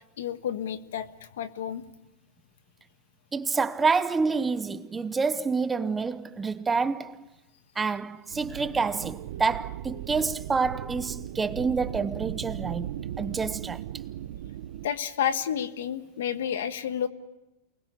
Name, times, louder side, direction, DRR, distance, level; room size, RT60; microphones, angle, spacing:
voice 1, 0.2-1.8 14.8-17.1, left 9 dB, 85° left, 1.5 m, -30 dB
voice 2, 3.3-7.2 7.8-12.9 13.2-13.8, right 4 dB, 15° right, 0.8 m, -28 dB
sound 1, 8.3-14.9, right 12 dB, 70° right, 0.9 m, -37 dB
28.5 x 20.5 x 8.2 m
supercardioid pair, 140°, 0 cm